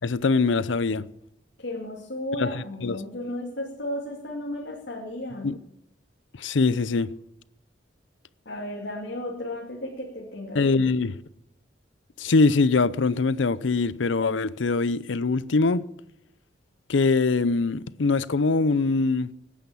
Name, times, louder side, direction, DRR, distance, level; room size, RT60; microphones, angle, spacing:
voice 1, 0.0-1.0 2.4-3.0 5.4-5.6 6.4-7.1 10.5-11.2 12.2-15.8 16.9-19.3, left 3 dB, 90° left, 0.6 m, -23 dB
voice 2, 1.6-5.5 8.4-10.6, left 1 dB, 70° left, 2.6 m, -34 dB
18.0 x 10.0 x 7.0 m
head